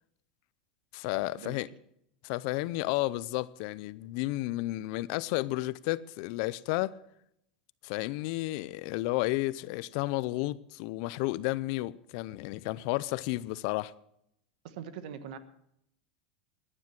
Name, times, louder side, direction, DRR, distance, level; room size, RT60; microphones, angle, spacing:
voice 1, 0.9-1.7 2.2-7.0 7.8-13.9, left 19 dB, 60° left, 0.6 m, -32 dB
voice 2, 14.6-15.4, right 8 dB, 70° right, 1.4 m, -42 dB
15.0 x 10.0 x 5.9 m
supercardioid pair, 120°, 4 cm